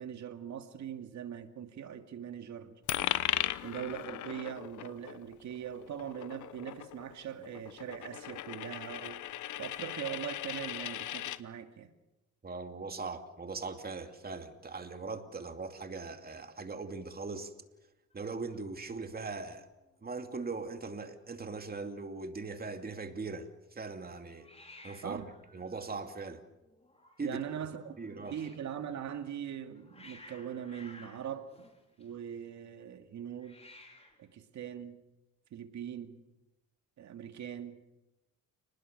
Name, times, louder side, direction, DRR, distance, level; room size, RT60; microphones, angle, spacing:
voice 1, 0.0-2.8 3.6-9.2 9.6-11.9 25.0-25.3 27.2-31.7 32.0-33.6 34.2-35.0 35.5-36.2 37.0-37.8, right 9 dB, 65° right, 2.5 m, -41 dB
Coin (dropping), 2.9-11.4, left 13 dB, 75° left, 1.0 m, -38 dB
voice 2, 12.4-17.5 18.1-19.7 20.0-24.5 24.8-25.3 25.5-26.4 27.2-27.6 28.0-28.4, right 4 dB, 30° right, 2.7 m, -40 dB
Hiss, 18.1-19.5 19.7-20.2 20.4-20.5 20.7-21.4 24.4-28.7 29.5-32.4 33.3-34.3, left 2 dB, 20° left, 5.1 m, -57 dB
29.5 x 20.0 x 6.8 m
cardioid pair, 90°, 30 cm